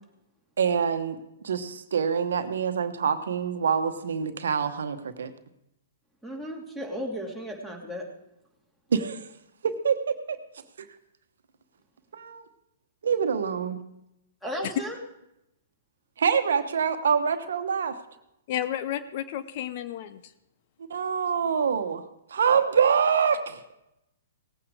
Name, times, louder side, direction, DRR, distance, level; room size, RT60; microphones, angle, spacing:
voice 1, 0.6-1.2 1.4-5.3 8.9-9.2 9.6-10.4 12.1-12.4 13.0-13.8 16.2-17.9 20.9-22.0 22.3-23.7, right 6 dB, 70° right, 9 dB, 1.1 m, -25 dB
voice 2, 6.2-8.1 14.4-15.0, equal, 5° left, 0 dB, 2.8 m, -34 dB
voice 3, 18.5-20.2, left 11 dB, 50° left, 12 dB, 0.7 m, -32 dB
18.0 x 8.7 x 4.8 m, 0.85 s
hypercardioid pair, 120°, 0 cm